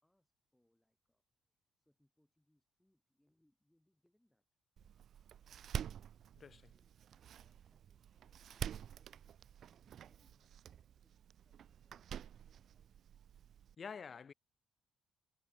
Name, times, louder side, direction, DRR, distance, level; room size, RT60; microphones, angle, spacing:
voice 1, 0.0-4.5 6.7-7.0 7.4-9.5 9.8-13.0, left 1 dB, 5° left, 7.2 m, -80 dB
Door, 4.8-13.7, right 9 dB, 65° right, 0.4 m, -48 dB
voice 2, 6.4-6.7 13.8-14.3, left 6 dB, 45° left, 1.2 m, -48 dB
cardioid pair, 90°, 0 cm